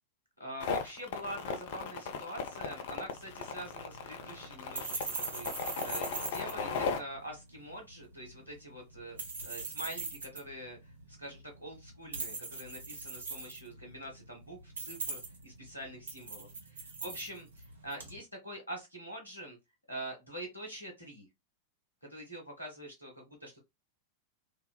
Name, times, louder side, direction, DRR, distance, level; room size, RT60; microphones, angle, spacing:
voice 1, 0.4-9.2 9.4-10.9 11.2-19.6 19.9-21.3 22.0-23.6, right 1 dB, 90° left, 1.1 m, -45 dB
sound 1, 0.6-7.0, left 5 dB, 55° left, 0.4 m, -36 dB
sound 2, 3.1-18.2, right 4 dB, 70° right, 0.7 m, -42 dB
2.8 x 2.0 x 2.2 m
figure-of-eight pair, 90°, 0 cm